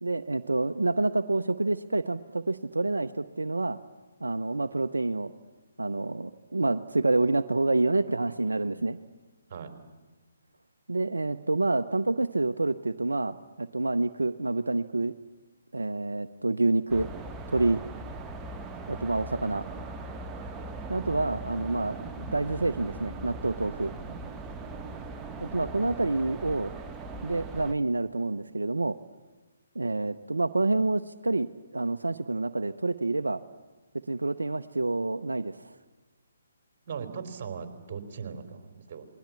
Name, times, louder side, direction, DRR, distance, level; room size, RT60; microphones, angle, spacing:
voice 1, 0.0-3.8 4.2-5.3 5.8-9.0 10.9-15.1 15.7-17.1 17.5-17.8 18.9-19.7 20.9-23.9 25.4-26.7 27.2-29.0 29.7-31.5 31.7-33.4 34.1-35.7, right 2 dB, 85° right, 9 dB, 0.8 m, -28 dB
sound 1, 16.9-27.7, right 3 dB, 10° right, 1.1 m, -40 dB
voice 2, 24.0-24.3 36.9-39.1, right 6 dB, 40° right, 8 dB, 3.5 m, -39 dB
28.0 x 21.0 x 8.4 m, 1.3 s
figure-of-eight pair, 140°, 0 cm